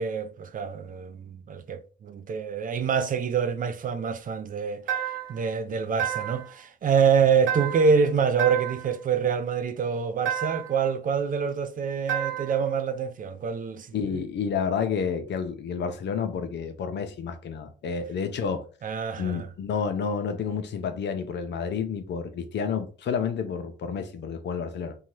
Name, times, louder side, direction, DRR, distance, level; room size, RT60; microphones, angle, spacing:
voice 1, 0.0-5.0 5.3-14.2 18.8-19.5, right 6 dB, 45° right, 0.4 m, -26 dB
sound 1, 4.9-5.4 6.0-6.5 7.5-8.0 8.4-8.9 10.2-10.8 12.1-12.6, right 10 dB, 80° right, 1.3 m, -30 dB
voice 2, 13.9-18.6 19.2-25.0, left 6 dB, 60° left, 0.6 m, -30 dB
2.7 x 2.3 x 3.1 m
cardioid pair, 90°, 20 cm